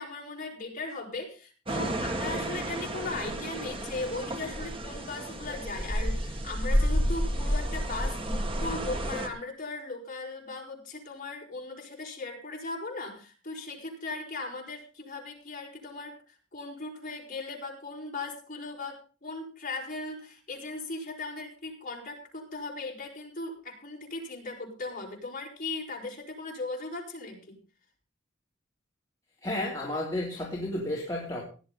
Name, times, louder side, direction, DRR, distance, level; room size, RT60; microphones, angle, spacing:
voice 1, 0.0-27.5, left 3 dB, 45° left, 0 dB, 4.8 m, -38 dB
sound 1, 1.7-9.3, equal, 30° right, 1.8 m, -30 dB
voice 2, 29.4-31.4, left 1 dB, 20° left, -3 dB, 3.1 m, -32 dB
17.5 x 11.0 x 4.0 m, 0.37 s
head